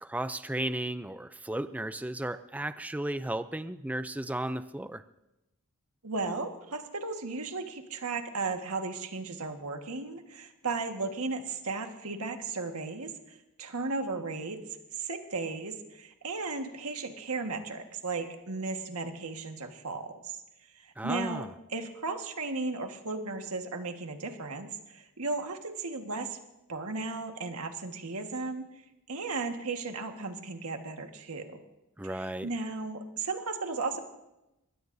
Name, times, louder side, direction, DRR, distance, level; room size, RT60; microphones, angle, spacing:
voice 1, 0.0-5.0 21.0-21.5 32.0-32.5, right 1 dB, 5° right, 12 dB, 0.4 m, -34 dB
voice 2, 6.0-14.6 15.0-20.4 20.7-21.4 21.7-26.4 26.7-28.7 29.1-31.6 32.0-34.0, right 3 dB, 80° right, 5 dB, 1.6 m, -35 dB
21.5 x 19.0 x 2.7 m, 0.94 s
head